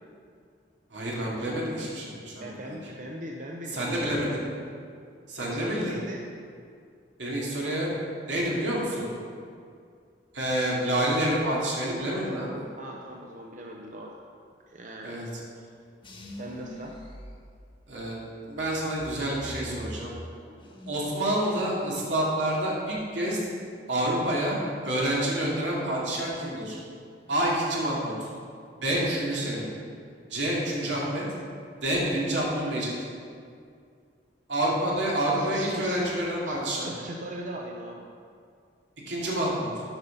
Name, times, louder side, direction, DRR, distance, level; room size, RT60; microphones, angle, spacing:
voice 1, 0.9-2.8 3.7-4.5 5.3-6.0 7.2-7.9 8.3-9.1 10.3-12.6 15.0-15.3 17.9-18.2 18.4-20.1 20.9-23.4 23.9-24.6 24.8-26.8 27.3-28.3 28.8-29.7 30.3-31.2 31.8-32.9 34.5-36.9 39.1-39.7, right 1 dB, 85° right, -5 dB, 2.5 m, -28 dB
voice 2, 2.4-4.3 5.4-6.3 12.8-14.1 14.7-15.3 15.6-15.7 16.3-17.0 35.3-36.1 36.4-38.1, right 1 dB, 45° right, 0 dB, 0.7 m, -40 dB
sound 1, 16.0-18.1 18.5-21.1 21.4-22.0, equal, 30° left, 1.2 m, -43 dB
8.9 x 5.5 x 6.8 m, 2.3 s
head